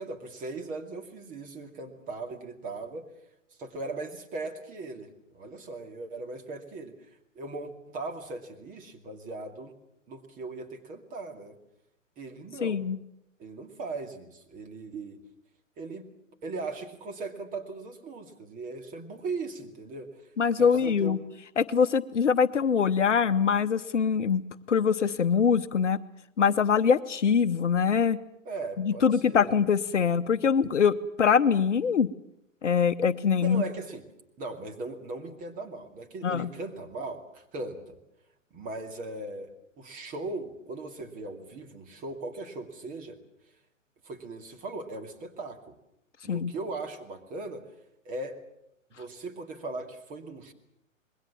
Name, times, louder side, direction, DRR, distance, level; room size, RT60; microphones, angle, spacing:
voice 1, 0.0-3.1 3.6-5.1 5.3-6.9 7.3-9.7 10.1-11.5 12.2-12.9 13.4-15.2 15.8-16.1 16.4-20.3 20.6-21.3 28.4-29.5 33.4-34.0 34.4-38.0 38.5-39.5 39.8-43.2 44.0-45.8 46.2-47.6 48.0-48.4 48.9-50.5, right 3 dB, 20° right, 4 dB, 2.4 m, -38 dB
voice 2, 12.6-13.0 20.4-21.2 21.6-26.0 26.4-28.2 28.8-32.1 32.6-33.6 36.2-36.5 46.3-46.5, left 6 dB, 65° left, 12 dB, 1.0 m, -23 dB
26.0 x 21.5 x 7.4 m, 0.80 s
figure-of-eight pair, 115°, 39 cm